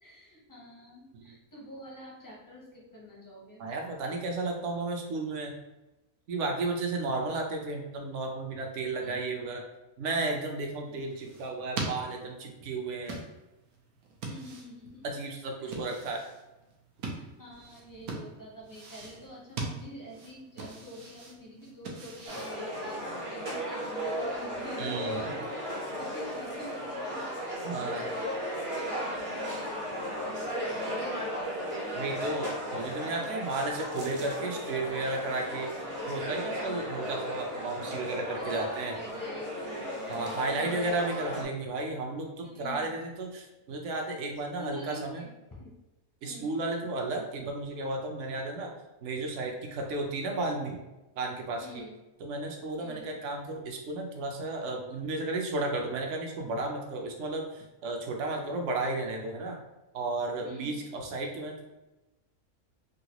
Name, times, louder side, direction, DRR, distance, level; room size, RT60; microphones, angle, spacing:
voice 1, 0.0-3.6 9.0-9.2 14.3-15.0 15.6-15.8 17.1-25.5 25.9-28.6 28.9-31.8 36.6-36.9 38.3-41.0 42.4-42.9 44.6-45.8 46.2-46.5 51.6-51.9 52.8-53.1 60.4-60.7, equal, 25° left, -4 dB, 0.5 m, -47 dB
voice 2, 3.6-5.6 6.3-9.6 10.0-13.2 15.0-16.2 24.8-25.3 27.6-28.1 31.9-35.7 36.1-38.9 40.1-45.2 46.2-48.7 49.0-50.8 51.2-51.8 52.2-59.6 59.9-61.6, right 2 dB, 65° right, 2 dB, 0.9 m, -33 dB
sound 1, 10.8-23.2, right 3 dB, 90° right, 1.1 m, -42 dB
sound 2, 22.3-41.4, equal, 40° right, 0.4 m, -35 dB
3.8 x 2.3 x 2.8 m, 1.0 s
omnidirectional pair, 1.5 m